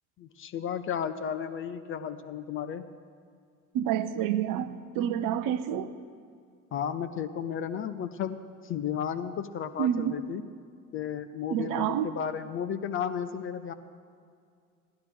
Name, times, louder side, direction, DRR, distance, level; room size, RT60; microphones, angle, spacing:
voice 1, 0.2-2.8 6.7-8.4 8.6-10.4 10.9-13.7, left 8 dB, 30° left, 10 dB, 0.5 m, -33 dB
voice 2, 3.7-5.9 9.8-10.2 11.5-12.1, right 10 dB, 45° right, 13 dB, 0.7 m, -28 dB
16.0 x 11.5 x 4.9 m, 2.2 s
figure-of-eight pair, 65°, 45 cm